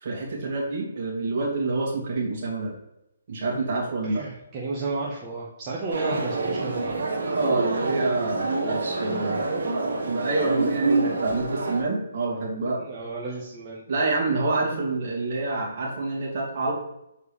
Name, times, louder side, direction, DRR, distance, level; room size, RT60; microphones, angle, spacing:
voice 1, 0.0-2.7 3.3-4.2 7.3-9.4 10.1-12.8 13.9-16.7, right 3 dB, 50° right, -2 dB, 2.3 m, -27 dB
voice 2, 4.0-7.0 12.8-13.8, right 3 dB, 25° right, -5 dB, 1.2 m, -32 dB
sound 1, 5.9-11.8, right 3 dB, 70° right, 2.0 m, -27 dB
6.9 x 4.6 x 3.3 m, 0.86 s
hypercardioid pair, 145°, 0 cm